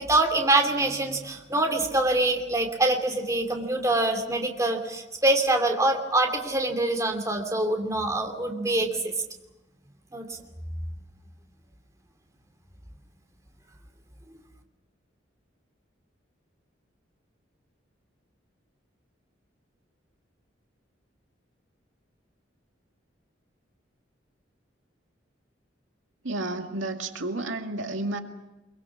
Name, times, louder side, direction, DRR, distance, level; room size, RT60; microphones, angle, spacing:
voice 1, 0.0-9.1 10.1-10.3, right 2 dB, 15° right, 4 dB, 2.7 m, -25 dB
voice 2, 26.2-28.2, right 2 dB, 90° right, 4 dB, 2.2 m, -31 dB
24.5 x 23.5 x 7.3 m, 1.0 s
head